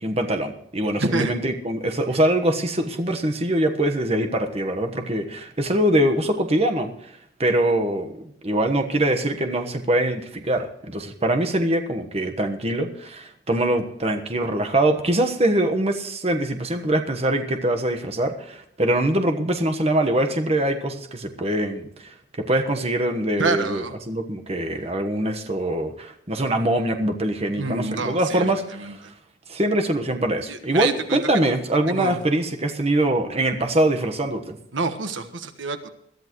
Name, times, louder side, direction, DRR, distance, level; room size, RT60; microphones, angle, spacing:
voice 1, 0.0-7.1 7.4-22.1 22.5-29.0 29.5-34.6, right 1 dB, 30° right, 5 dB, 1.3 m, -23 dB
voice 2, 1.0-1.3 23.4-23.9 27.5-28.5 28.8-28.9 30.5-31.2 31.9-32.2 34.7-35.9, right 3 dB, 75° right, 8 dB, 1.4 m, -27 dB
22.0 x 13.5 x 3.1 m, 0.70 s
head